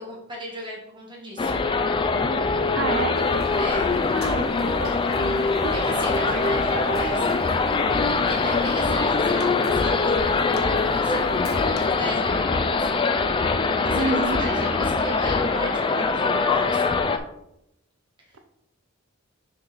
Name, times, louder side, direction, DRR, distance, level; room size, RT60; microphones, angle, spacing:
voice 1, 0.0-1.6 3.6-3.9 5.7-7.3 8.3-12.9 13.8-17.0 18.3-18.4, equal, 20° right, -3 dB, 1.8 m, -35 dB
sound 1, 1.4-17.2, left 4 dB, 25° left, 0.4 m, -23 dB
voice 2, 2.7-3.2 4.1-5.8 13.9-14.4, right 3 dB, 75° right, 6 dB, 0.7 m, -29 dB
sound 2, 3.2-11.9, left 1 dB, 70° left, 0.9 m, -38 dB
6.3 x 4.7 x 4.0 m, 0.82 s
head